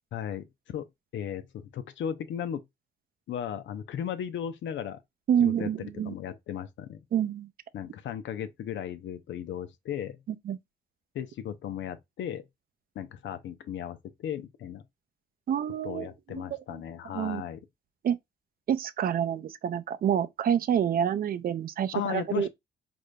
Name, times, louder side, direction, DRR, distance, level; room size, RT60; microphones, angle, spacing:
voice 1, 0.1-0.8 1.1-2.6 3.3-5.0 5.4-7.0 7.7-10.2 11.1-12.4 12.9-14.8 15.8-17.7 21.9-22.5, left 9 dB, 70° left, 0.7 m, -36 dB
voice 2, 5.3-6.1 7.1-7.5 10.5-10.6 15.5-16.1 16.3-16.4 17.1-17.4 18.0-18.2 18.7-22.5, right 9 dB, 50° right, 0.5 m, -27 dB
4.8 x 2.6 x 2.2 m
cardioid pair, 90°, 20 cm